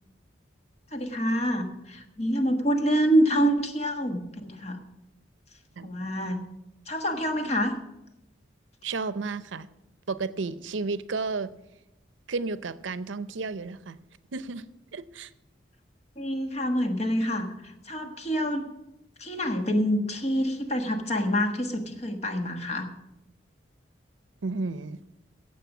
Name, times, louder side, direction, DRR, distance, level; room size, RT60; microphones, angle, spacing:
voice 1, 0.9-4.8 5.8-6.4 6.9-7.7 16.2-18.6 19.2-22.9, equal, 35° left, 5 dB, 1.3 m, -26 dB
voice 2, 8.8-9.7 10.1-11.5 12.3-14.0 14.3-14.7 14.9-15.3 24.4-25.0, right 4 dB, 80° right, 15 dB, 0.6 m, -32 dB
16.0 x 7.8 x 6.0 m, 0.91 s
head